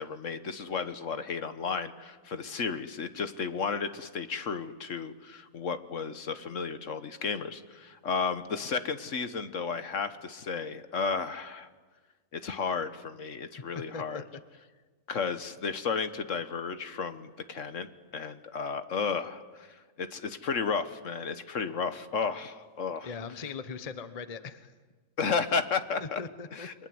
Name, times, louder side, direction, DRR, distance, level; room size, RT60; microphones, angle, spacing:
voice 1, 0.0-11.7 12.3-14.2 15.1-23.1 25.2-26.2 26.5-26.7, left 5 dB, 60° left, 10 dB, 1.5 m, -33 dB
voice 2, 23.0-24.7 26.0-26.7, left 5 dB, 30° left, 11 dB, 1.0 m, -40 dB
29.5 x 22.5 x 7.8 m, 1.4 s
omnidirectional pair, 1.5 m